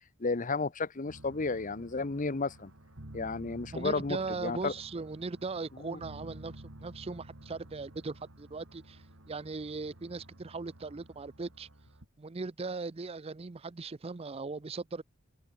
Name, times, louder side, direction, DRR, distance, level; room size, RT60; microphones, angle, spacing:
voice 1, 0.2-2.7 3.1-4.7 5.8-6.0, left 3 dB, 40° left, 0.8 m, -33 dB
sound 1, 1.1-12.1, right 1 dB, 65° right, 2.5 m, -51 dB
voice 2, 3.7-11.7 12.2-15.0, right 3 dB, 30° right, 0.5 m, -39 dB
open air
head